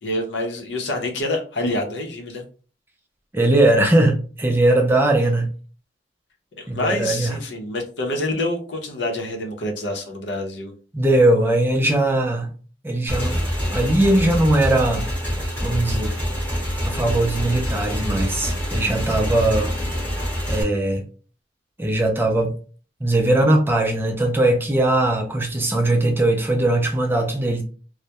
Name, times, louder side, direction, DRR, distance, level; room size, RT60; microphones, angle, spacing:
voice 1, 0.0-2.4 6.6-10.7, left 1 dB, 75° left, 3 dB, 0.6 m, -27 dB
voice 2, 3.3-5.5 6.7-7.4 10.9-12.5 12.8-13.4 13.7-15.0 15.6-16.1 16.8-19.7 20.5-21.0 21.8-22.5 23.0-27.6, right 1 dB, 10° right, 2 dB, 0.4 m, -19 dB
Motorcycle / Engine, 13.1-20.6, equal, 10° left, 0.8 m, -25 dB
2.2 x 2.0 x 2.8 m, 0.39 s
head